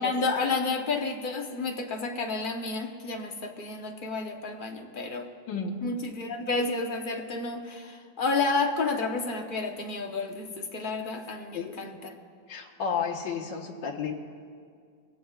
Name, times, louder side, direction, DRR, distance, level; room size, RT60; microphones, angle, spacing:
voice 1, 0.0-5.3 5.8-12.1, left 3 dB, 40° left, 3 dB, 0.7 m, -30 dB
voice 2, 5.5-5.8 11.5-11.7 12.5-14.2, left 6 dB, 70° left, 0 dB, 1.9 m, -32 dB
22.5 x 17.0 x 2.4 m, 2.1 s
omnidirectional pair, 2.0 m